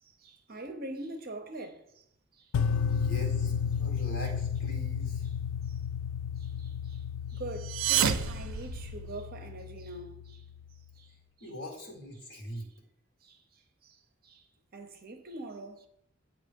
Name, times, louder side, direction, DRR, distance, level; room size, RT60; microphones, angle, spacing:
voice 1, 0.0-2.0 2.3-2.5 2.9-3.0 5.2-5.3 5.7-5.8 6.4-7.0 7.3-10.4 10.9-11.1 11.4-11.5 13.2-14.4 14.7-15.9, right 2 dB, 45° right, 0.7 m, -44 dB
sound 1, 2.5-10.7, left 7 dB, 80° left, 0.4 m, -33 dB
voice 2, 2.9-3.5 3.8-5.2 11.4-12.7, right 1 dB, 60° left, 1.6 m, -41 dB
sound 2, 7.5-9.4, right 9 dB, 75° right, 0.4 m, -30 dB
8.6 x 3.0 x 5.2 m
head